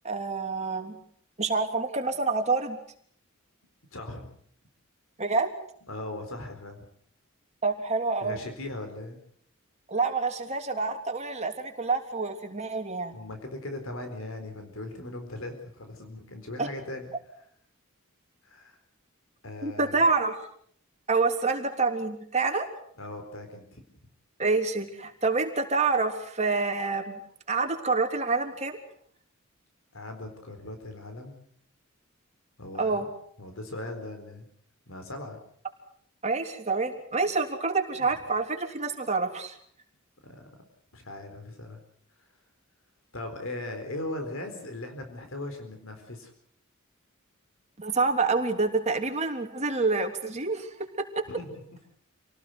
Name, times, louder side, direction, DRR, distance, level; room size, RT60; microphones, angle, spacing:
voice 1, 0.0-1.0 1.4-2.8 5.2-5.5 7.6-8.4 9.9-13.2 16.6-16.7 19.6-20.3 21.1-22.7 24.4-27.2 27.5-28.8 32.8-33.1 36.2-39.6 47.8-51.3, right 3 dB, 35° right, 4 dB, 3.4 m, -27 dB
voice 2, 3.9-4.3 5.9-6.8 8.2-9.2 13.1-17.1 18.4-18.8 19.4-20.0 23.0-23.8 29.9-31.4 32.6-33.0 33.4-34.4 34.9-35.4 40.2-40.4 40.9-41.8 43.1-46.3 51.3-51.6, left 2 dB, 70° left, 6 dB, 4.3 m, -39 dB
28.0 x 18.5 x 8.0 m, 0.64 s
head